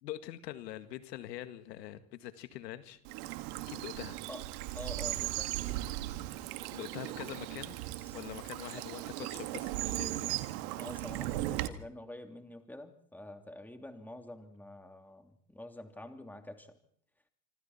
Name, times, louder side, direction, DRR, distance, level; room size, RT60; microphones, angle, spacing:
voice 1, 0.0-3.0 3.7-4.2 6.7-7.8 8.1-10.7, left 13 dB, 80° left, 1.9 m, -44 dB
Bird vocalization bird call bird song / Stream, 3.1-11.7, right 16 dB, 65° right, 1.9 m, -37 dB
voice 2, 4.7-5.6 7.9-8.1 8.7-8.9 10.8-16.8, left 1 dB, 5° left, 3.0 m, -47 dB
26.0 x 26.0 x 4.3 m
hypercardioid pair, 100°, 49 cm